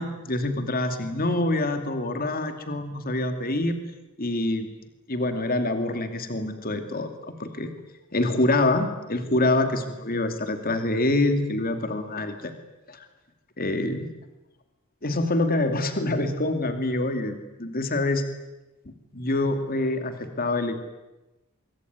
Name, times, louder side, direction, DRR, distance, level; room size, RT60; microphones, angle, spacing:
voice 1, 0.0-3.8 4.2-4.7 5.1-7.7 8.1-12.5 12.9-13.0 13.6-14.1 15.0-18.2 19.1-20.8, left 2 dB, 40° left, 7 dB, 2.6 m, -26 dB
25.0 x 24.5 x 9.6 m, 1.0 s
head